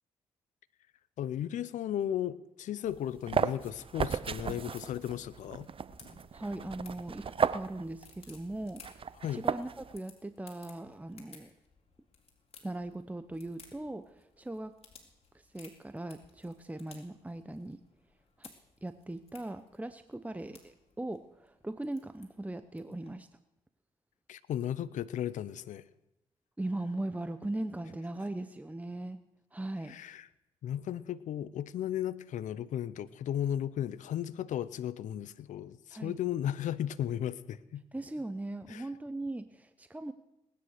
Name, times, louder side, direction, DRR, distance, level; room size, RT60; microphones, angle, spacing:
voice 1, 1.2-5.7 9.2-9.4 24.3-25.8 29.9-30.3 30.6-37.8 38.7-38.9, left 10 dB, 70° left, 17 dB, 0.7 m, -35 dB
sound 1, 2.9-10.0, right 6 dB, 40° right, 0.7 m, -35 dB
sound 2, 3.7-23.1, left 5 dB, 50° left, 4.0 m, -60 dB
voice 2, 6.3-11.5 12.6-14.7 15.5-17.8 18.4-18.5 18.8-23.3 26.6-29.2 29.5-29.9 35.9-36.2 37.9-40.1, right 1 dB, 10° right, 10 dB, 0.9 m, -39 dB
19.0 x 10.0 x 6.7 m, 0.89 s
hypercardioid pair, 50°, 14 cm